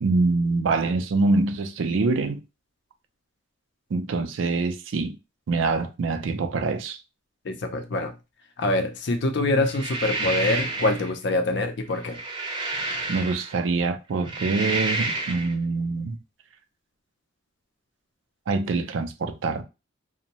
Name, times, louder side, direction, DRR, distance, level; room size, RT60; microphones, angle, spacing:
voice 1, 0.0-2.4 3.9-5.2 5.5-7.0 13.1-16.2 18.5-19.6, right 3 dB, 80° right, 0.4 m, -25 dB
voice 2, 7.4-8.1 8.6-12.2, left 2 dB, 60° left, 0.5 m, -25 dB
sound 1, 9.6-11.1 11.9-13.6 14.1-15.5, right 3 dB, 25° right, 0.6 m, -30 dB
2.6 x 2.1 x 2.9 m
head